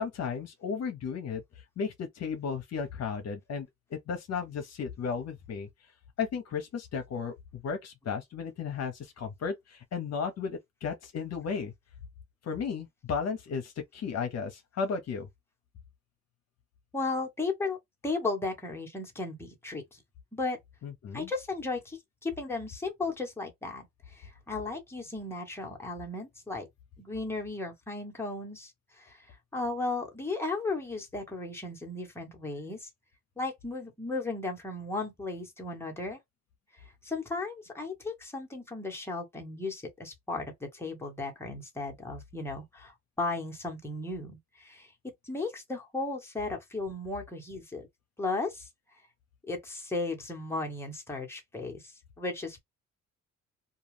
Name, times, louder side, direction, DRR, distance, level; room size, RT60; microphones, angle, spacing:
voice 1, 0.0-1.4 1.8-5.7 6.2-11.7 12.4-15.3 20.8-21.3, left 6 dB, 60° left, 0.8 m, -34 dB
voice 2, 16.9-17.8 18.0-20.0 20.3-20.6 21.1-26.7 27.0-32.9 33.4-36.2 36.7-44.9 45.2-47.9 48.2-48.7 49.5-52.6, left 3 dB, 10° left, 1.1 m, -35 dB
2.3 x 2.3 x 3.2 m
cardioid pair, 90°, 30 cm